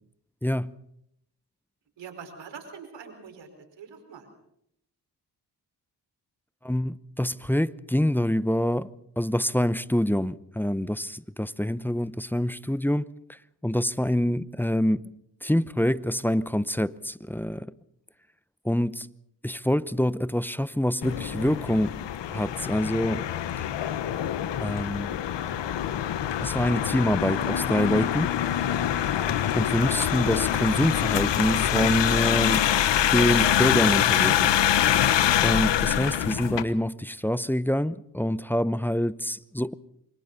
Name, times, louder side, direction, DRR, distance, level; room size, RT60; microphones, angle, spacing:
voice 1, 0.4-0.7 6.6-8.9 9.2-15.1 15.4-17.7 18.6-19.1 19.4-21.9 22.3-23.3 24.6-25.3 26.4-28.3 29.5-32.7 33.1-34.6 35.4-39.7, equal, 5° left, 0.8 m, -26 dB
voice 2, 2.0-3.5 3.8-4.3 29.8-30.0, right 6 dB, 85° right, 5.0 m, -43 dB
sound 1, 21.0-36.6, left 10 dB, 85° left, 1.3 m, -25 dB
29.0 x 25.5 x 4.1 m
supercardioid pair, 50°, 42 cm